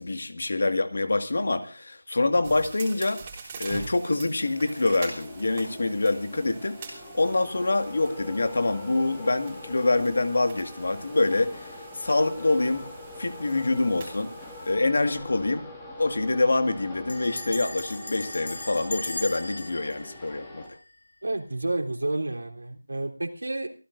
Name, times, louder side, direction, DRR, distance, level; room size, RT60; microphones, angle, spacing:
voice 1, 0.0-3.2 3.6-12.9 13.2-14.3 14.7-15.6 16.0-20.8, left 2 dB, 60° left, 8 dB, 1.9 m, -26 dB
sound 1, 2.4-14.7, right 4 dB, 20° right, 3.4 m, -45 dB
sound 2, 4.4-20.7, left 2 dB, 10° left, 2.3 m, -43 dB
Bell, 15.3-15.4 15.6-15.7 15.9-16.3 17.1-21.2, left 2 dB, 75° left, 7.1 m, -38 dB
voice 2, 21.2-23.7, right 2 dB, 85° right, 2 dB, 3.6 m, -30 dB
26.0 x 15.5 x 2.7 m, 0.34 s
figure-of-eight pair, 175°, 0 cm